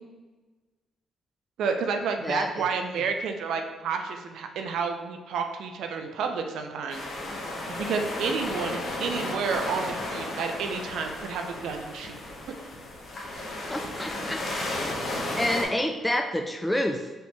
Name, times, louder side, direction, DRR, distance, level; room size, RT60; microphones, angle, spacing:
voice 1, 1.6-7.1 7.7-12.2, right 5 dB, 80° right, 5 dB, 0.5 m, -30 dB
voice 2, 2.2-2.7 13.7-14.4 15.4-17.1, left 1 dB, 10° left, 4 dB, 0.3 m, -28 dB
sound 1, 6.9-15.6, left 1 dB, 45° left, 1.0 m, -34 dB
4.3 x 2.8 x 3.3 m, 1.3 s
cardioid pair, 90°, 0 cm